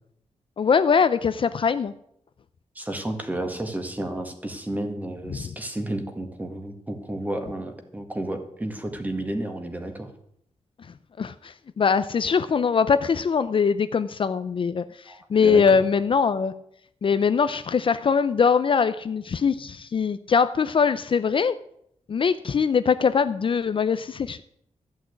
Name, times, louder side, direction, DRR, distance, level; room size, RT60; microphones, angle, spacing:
voice 1, 0.6-1.9 11.2-16.5 17.0-21.5 22.1-24.4, left 6 dB, 45° left, 12 dB, 0.5 m, -22 dB
voice 2, 2.7-10.1 15.1-15.8, right 1 dB, 15° right, 5 dB, 1.7 m, -32 dB
13.5 x 6.3 x 9.4 m, 0.71 s
wide cardioid pair, 165°, 12 cm